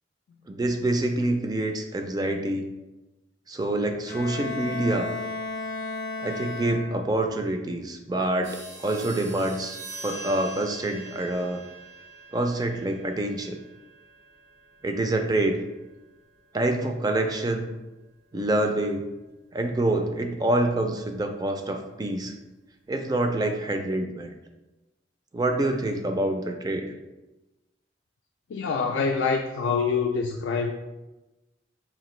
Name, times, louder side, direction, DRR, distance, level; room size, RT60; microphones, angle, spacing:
voice 1, 0.5-2.7 3.5-5.2 6.2-11.6 12.3-13.6 14.8-15.6 16.5-17.7 18.3-19.1 19.5-22.3 22.9-24.3 25.3-26.9, right 1 dB, 20° right, 5 dB, 0.3 m, -26 dB
Bowed string instrument, 4.1-7.3, left 3 dB, 50° left, 0.6 m, -34 dB
sound 1, 8.4-18.6, right 2 dB, 85° right, 0.9 m, -45 dB
voice 2, 28.5-30.7, left 5 dB, 90° left, 2 dB, 0.3 m, -25 dB
5.0 x 2.6 x 3.1 m, 1.1 s
head